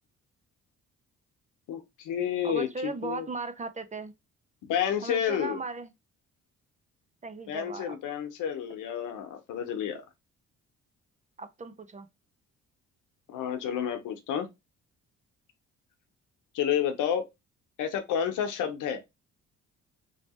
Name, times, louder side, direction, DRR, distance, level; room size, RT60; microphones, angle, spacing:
voice 1, 1.7-3.3 4.6-5.6 7.5-10.0 13.3-14.5 16.5-17.3 17.8-19.0, left 9 dB, 85° left, 0.9 m, -30 dB
voice 2, 2.4-4.1 5.0-5.9 7.2-8.0 11.4-12.1, right 3 dB, 25° right, 0.6 m, -37 dB
3.2 x 2.8 x 4.3 m
cardioid pair, 90°, 30 cm